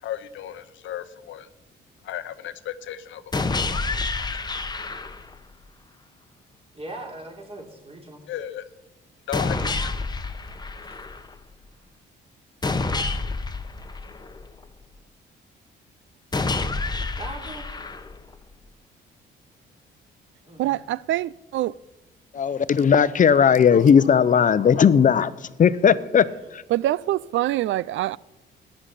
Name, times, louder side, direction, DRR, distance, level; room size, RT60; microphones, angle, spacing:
voice 1, 0.0-1.5 2.0-4.1 8.3-8.6 9.3-9.9, left 11 dB, 75° left, 0.8 m, -35 dB
sound 1, 3.3-5.3 9.3-11.3 12.6-14.6 16.3-18.3, left 3 dB, 20° left, 1.0 m, -28 dB
voice 2, 6.7-8.2 17.2-17.7 20.4-20.9, right 2 dB, 30° right, 3.8 m, -39 dB
voice 3, 20.6-21.7 26.7-28.2, right 14 dB, 75° right, 0.4 m, -25 dB
voice 4, 22.3-25.3 25.6-26.2 26.5-26.6, left 7 dB, 40° left, 0.7 m, -17 dB
14.5 x 10.0 x 5.8 m
cardioid pair, 90°, 20 cm